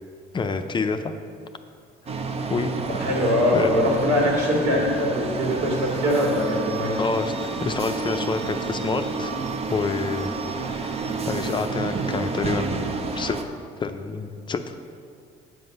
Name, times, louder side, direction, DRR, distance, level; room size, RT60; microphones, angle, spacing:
voice 1, 0.3-1.1 2.5-2.7 3.5-3.8 7.0-9.3 9.7-12.8 13.1-13.4 13.8-14.8, left 4 dB, 30° left, 7 dB, 0.5 m, -28 dB
sound 1, 2.1-13.4, right 4 dB, 35° right, 0.7 m, -29 dB
voice 2, 2.9-6.9, left 1 dB, 85° right, -2 dB, 2.4 m, -22 dB
7.8 x 7.7 x 5.3 m, 2.3 s
cardioid pair, 110°, 17 cm